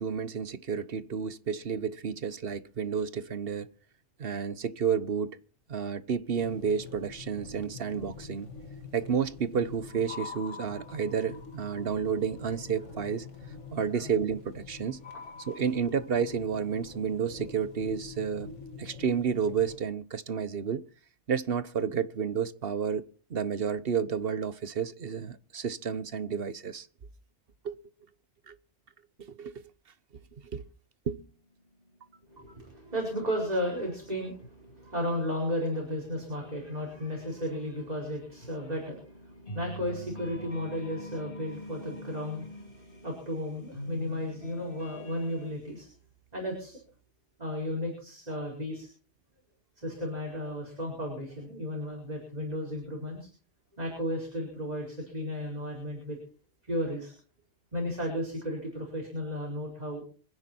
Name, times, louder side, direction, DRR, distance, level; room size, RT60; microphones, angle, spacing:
voice 1, 0.0-3.7 4.2-5.4 5.7-8.5 8.9-13.3 13.7-15.0 15.5-18.5 18.8-20.8 21.3-23.0 23.3-26.9 27.6-27.8 28.5-28.6 29.2-29.5 30.5-30.6 31.1-31.3, right 7 dB, 55° right, 1.2 m, -31 dB
sound 1, 6.3-19.8, left 5 dB, 85° left, 2.4 m, -45 dB
sound 2, 31.3-45.5, left 1 dB, 50° left, 3.7 m, -47 dB
voice 2, 32.3-45.9 46.3-46.8 47.4-48.9 49.8-53.3 53.8-56.2 56.7-57.1 57.7-60.0, equal, 35° right, 5.2 m, -34 dB
26.5 x 10.0 x 4.4 m
omnidirectional pair, 1.2 m